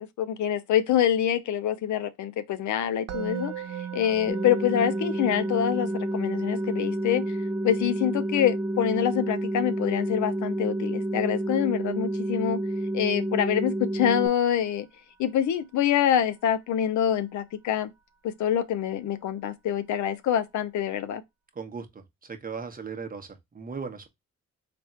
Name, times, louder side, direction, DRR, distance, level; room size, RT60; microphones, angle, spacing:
voice 1, 0.2-3.5 3.9-7.4 7.6-12.6 12.9-14.9 15.2-17.9 18.2-21.2, left 10 dB, 70° left, 0.7 m, -26 dB
Musical instrument, 3.1-14.2, right 9 dB, 60° right, 0.9 m, -42 dB
sound 1, 4.3-14.3, right 1 dB, 5° right, 0.6 m, -29 dB
voice 2, 21.6-21.9 22.3-23.3 23.5-24.1, right 5 dB, 30° right, 0.9 m, -36 dB
3.4 x 2.5 x 4.2 m
cardioid pair, 90°, 30 cm